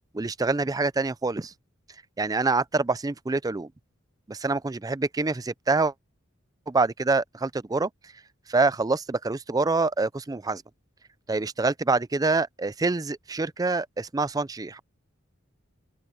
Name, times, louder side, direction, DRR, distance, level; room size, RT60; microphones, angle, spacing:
voice 1, 0.1-1.5 2.2-3.7 4.3-5.9 6.7-7.9 8.5-10.6 11.3-14.8, right 3 dB, 20° right, 0.4 m, -26 dB
open air
head